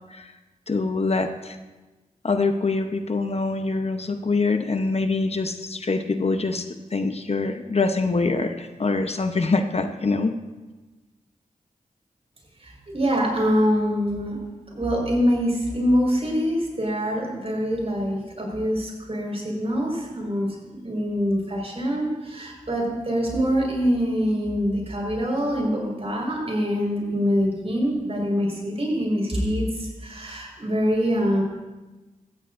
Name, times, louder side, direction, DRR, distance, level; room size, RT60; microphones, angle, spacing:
voice 1, 0.7-1.6 2.2-6.6 6.9-10.4, left 3 dB, 45° left, 7 dB, 0.9 m, -24 dB
voice 2, 12.6-14.4 14.7-31.4, equal, 45° right, -1 dB, 4.9 m, -24 dB
17.0 x 14.0 x 2.6 m, 1.2 s
cardioid pair, 50°, 14 cm